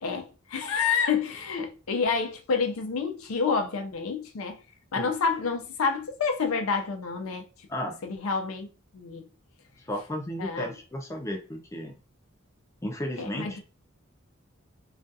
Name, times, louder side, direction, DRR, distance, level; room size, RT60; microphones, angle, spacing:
voice 1, 0.0-4.6 4.9-7.4 7.8-8.7 8.9-9.3 10.4-10.7 13.2-13.6, left 5 dB, 85° left, 0.5 m, -28 dB
voice 2, 9.8-11.9 12.8-13.6, equal, 15° left, 0.4 m, -34 dB
2.4 x 2.2 x 2.6 m
head